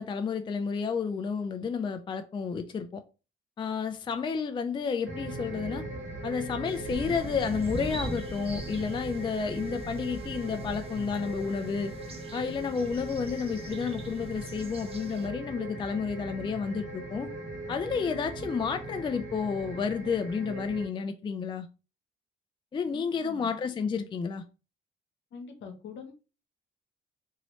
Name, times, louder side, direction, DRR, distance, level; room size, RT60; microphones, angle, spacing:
voice 1, 0.0-3.0 3.6-5.8 6.2-11.9 12.3-17.3 17.7-21.7 22.7-24.4, left 5 dB, 25° left, 0.3 m, -31 dB
sound 1, 5.0-20.9, right 2 dB, 75° right, 1.2 m, -39 dB
sound 2, 6.7-15.3, right 2 dB, 30° right, 0.7 m, -42 dB
voice 2, 22.9-23.5 25.3-26.1, left 5 dB, 70° left, 0.9 m, -44 dB
2.9 x 2.7 x 3.0 m
cardioid pair, 90°, 20 cm